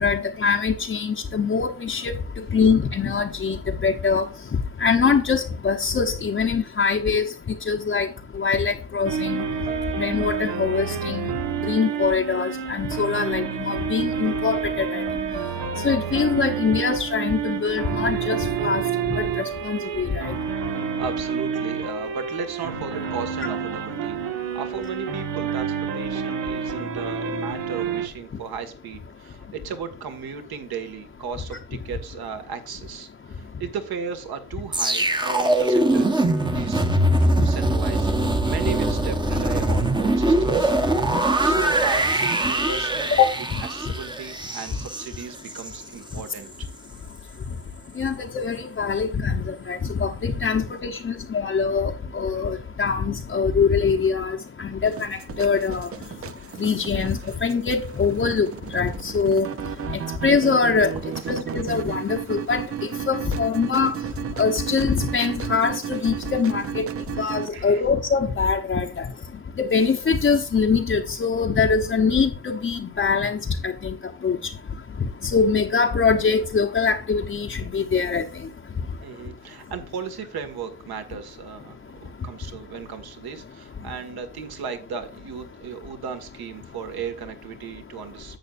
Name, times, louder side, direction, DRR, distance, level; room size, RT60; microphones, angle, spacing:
voice 1, 0.0-2.1 2.5-4.3 4.8-8.1 8.4-9.4 10.0-11.3 11.6-15.0 15.8-18.8 19.1-20.3 37.4-37.5 43.2-43.3 48.0-55.9 56.6-58.5 58.7-59.5 60.2-60.9 61.3-64.0 64.4-66.9 67.2-69.0 69.6-73.9 74.2-74.4 75.3-78.2, left 5 dB, 25° left, 0.9 m, -23 dB
sound 1, 9.0-28.1, right 7 dB, 80° right, 1.7 m, -28 dB
voice 2, 21.0-24.2 24.5-31.6 31.8-36.8 37.2-40.7 41.1-43.2 43.7-46.7 61.2-61.3 67.5-67.9 79.0-88.4, right 6 dB, 55° right, 1.9 m, -35 dB
sound 2, 34.7-45.8 46.2-46.4, right 1 dB, 10° right, 1.0 m, -22 dB
sound 3, 54.9-67.5, right 9 dB, 35° right, 0.6 m, -33 dB
11.0 x 7.9 x 2.5 m
cardioid pair, 110°, 43 cm